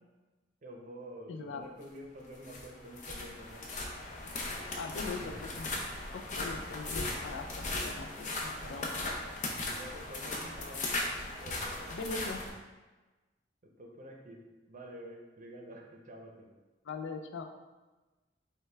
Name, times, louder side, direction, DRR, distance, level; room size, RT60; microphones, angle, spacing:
voice 1, 0.6-3.7 4.8-5.4 8.6-8.8 9.6-10.9 11.4-12.0 13.6-16.5, right 1 dB, 45° right, 1 dB, 0.6 m, -48 dB
voice 2, 1.3-1.6 4.8-5.8 6.1-8.9 11.9-12.4 16.8-17.4, left 4 dB, 85° left, 4 dB, 0.4 m, -41 dB
sound 1, 2.2-12.5, left 2 dB, 45° left, 0.6 m, -38 dB
5.5 x 2.3 x 3.3 m, 1.2 s
head